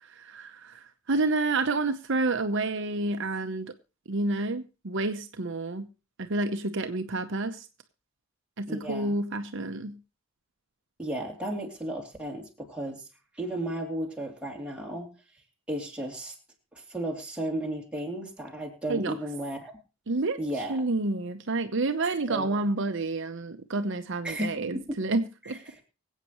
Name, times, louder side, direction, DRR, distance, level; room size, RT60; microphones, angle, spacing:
voice 1, 0.0-3.7 4.1-5.9 6.2-7.7 8.6-10.0 18.9-19.1 20.1-20.4 20.7-25.6, right 2 dB, 60° right, 7 dB, 0.9 m, -29 dB
voice 2, 8.7-9.1 11.0-13.0 13.3-15.1 15.7-16.3 16.7-19.7 20.4-20.8 22.3-22.6 24.2-25.0 25.5-25.8, right 1 dB, 5° right, -1 dB, 3.0 m, -34 dB
24.5 x 8.4 x 3.1 m, 0.31 s
head